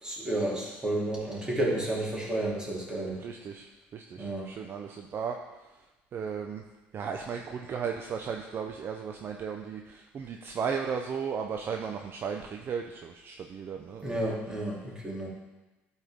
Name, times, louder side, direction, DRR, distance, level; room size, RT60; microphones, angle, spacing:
voice 1, 0.0-3.2 4.2-4.5 14.0-15.3, right 1 dB, 15° right, -5 dB, 2.9 m, -31 dB
voice 2, 3.2-3.7 3.9-5.4 6.1-6.6 6.9-14.3, right 6 dB, 45° right, 3 dB, 0.6 m, -35 dB
12.0 x 4.5 x 3.6 m, 1.1 s
supercardioid pair, 90°, 5 cm